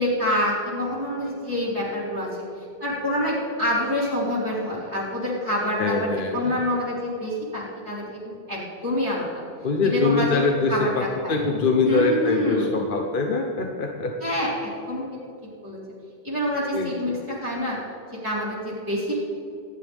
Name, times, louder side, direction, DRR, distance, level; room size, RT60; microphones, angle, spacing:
voice 1, 0.0-2.3 2.8-9.3 9.8-10.4 10.7-11.4 11.8-12.8 14.2-15.2 15.6-15.8 16.2-17.8 18.2-19.2, left 1 dB, 15° right, -9 dB, 3.4 m, -26 dB
voice 2, 5.8-6.6 9.6-14.1 16.7-17.1, left 3 dB, 50° left, 2 dB, 1.2 m, -23 dB
25.5 x 11.0 x 3.5 m, 2.7 s
omnidirectional pair, 1.1 m